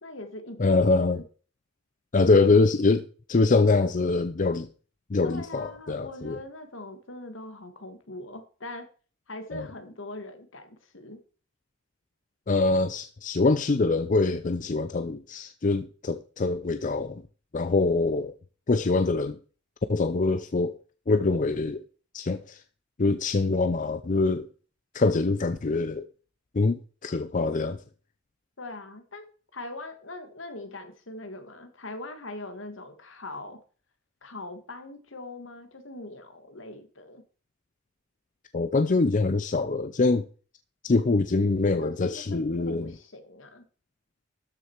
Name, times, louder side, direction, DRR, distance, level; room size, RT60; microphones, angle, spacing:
voice 1, 0.0-0.7 1.1-1.2 5.2-8.9 9.3-11.2 28.6-29.2 29.5-33.6 34.2-37.2 41.6-43.7, left 2 dB, 75° left, 1.9 m, -41 dB
voice 2, 0.6-1.2 2.1-4.7 5.1-6.4 9.5-9.7 12.5-17.2 17.5-18.3 18.7-19.4 19.9-20.8 21.1-21.8 22.1-22.6 23.0-24.5 24.9-26.1 26.5-27.8 38.5-40.3 40.8-42.9, left 3 dB, 40° left, 0.5 m, -24 dB
13.0 x 6.6 x 4.6 m
head